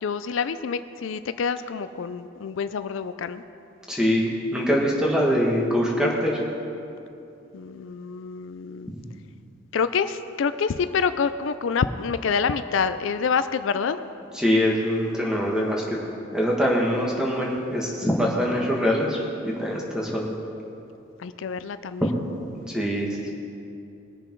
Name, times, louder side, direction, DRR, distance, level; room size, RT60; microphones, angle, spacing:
voice 1, 0.0-3.4 7.5-8.9 9.7-14.1 21.2-22.1 23.2-23.3, left 6 dB, 75° left, 12 dB, 0.4 m, -27 dB
voice 2, 3.9-6.4 8.9-9.0 14.3-16.0 16.3-20.3 22.7-23.1, equal, 5° right, -3 dB, 1.6 m, -23 dB
20.5 x 6.8 x 4.6 m, 2.7 s
head